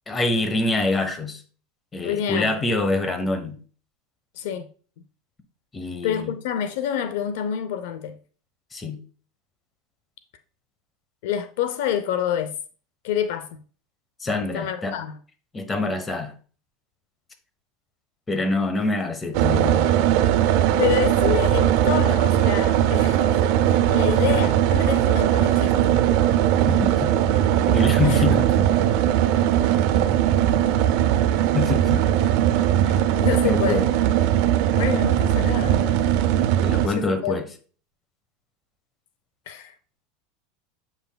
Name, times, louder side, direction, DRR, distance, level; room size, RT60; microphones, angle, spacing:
voice 1, 0.1-1.4 1.9-3.6 5.7-6.3 8.7-9.0 14.2-15.0 15.5-16.3 18.3-20.3 26.7-27.3 27.7-28.7 31.5-32.0 33.4-33.8 36.6-37.4, left 2 dB, 15° left, 1.1 m, -25 dB
voice 2, 2.0-2.5 4.4-4.7 6.0-8.2 11.2-12.5 13.0-13.6 14.5-15.2 20.8-26.0 28.0-28.2 32.8-33.9 34.7-36.0 36.9-37.3 39.5-39.7, left 9 dB, 75° left, 0.6 m, -27 dB
sound 1, 19.3-36.9, right 11 dB, 60° right, 0.6 m, -19 dB
7.7 x 5.7 x 2.3 m
supercardioid pair, 140°, 0 cm